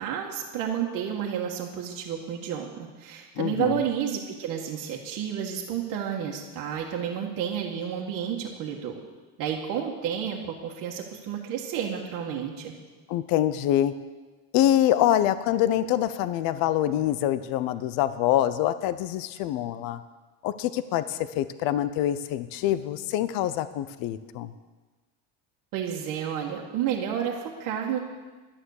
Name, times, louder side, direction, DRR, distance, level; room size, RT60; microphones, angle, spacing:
voice 1, 0.0-9.0 9.4-12.7 25.7-28.0, right 8 dB, 55° right, -1 dB, 1.6 m, -31 dB
voice 2, 3.4-3.8 13.1-13.9 14.5-20.0 20.4-24.5, left 12 dB, 65° left, 13 dB, 0.7 m, -25 dB
11.5 x 9.5 x 6.5 m, 1.3 s
cardioid pair, 160°, 38 cm